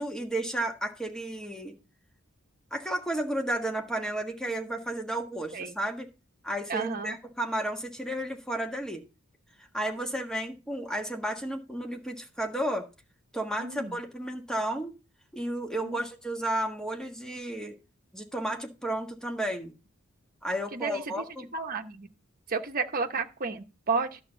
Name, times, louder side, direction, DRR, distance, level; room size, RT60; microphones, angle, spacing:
voice 1, 0.0-1.7 2.7-6.1 6.4-9.0 9.6-12.9 13.3-14.9 15.3-17.8 18.1-19.7 20.4-21.5, right 1 dB, 5° left, 1.4 m, -32 dB
voice 2, 6.7-7.2 13.6-14.0 15.8-16.0 20.7-21.2 21.5-22.1 22.5-24.2, right 4 dB, 45° right, 1.1 m, -32 dB
11.5 x 7.1 x 3.9 m
head